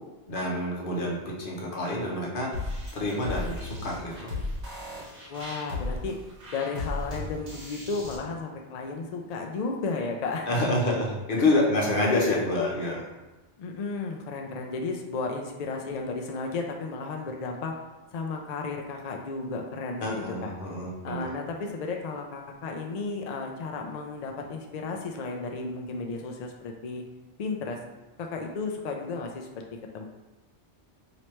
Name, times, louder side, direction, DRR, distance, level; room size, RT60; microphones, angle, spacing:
voice 1, 0.3-2.5 2.9-4.3 10.5-13.1 20.0-21.3, left 2 dB, 50° left, -2 dB, 1.0 m, -27 dB
sound 1, 2.5-8.2, left 2 dB, 50° right, 1.3 m, -35 dB
voice 2, 5.3-6.2 6.5-10.7 11.4-11.5 11.8-12.3 13.6-17.7 18.1-20.5 21.0-27.0 27.4-27.8 28.2-30.0, left 4 dB, 65° left, 2 dB, 0.4 m, -34 dB
3.1 x 2.9 x 4.4 m, 1.1 s
omnidirectional pair, 1.2 m